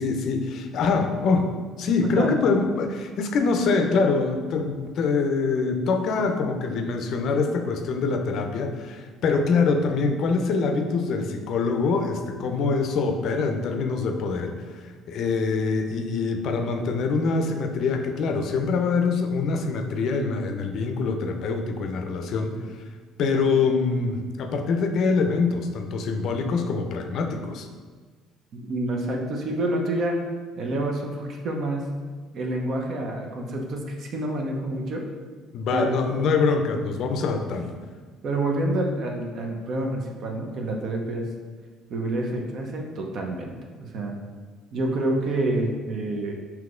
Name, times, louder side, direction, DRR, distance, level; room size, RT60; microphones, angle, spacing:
voice 1, 0.0-22.8 23.2-27.7 35.5-37.7, left 4 dB, 60° left, 5 dB, 0.4 m, -24 dB
voice 2, 28.5-30.1 30.6-31.9 32.3-35.0 35.7-36.2 36.7-36.8 38.2-41.2 41.9-43.5 43.8-44.2 44.7-46.3, right 1 dB, 55° right, 1 dB, 0.6 m, -28 dB
5.8 x 2.8 x 2.4 m, 1.5 s
hypercardioid pair, 60°, 0 cm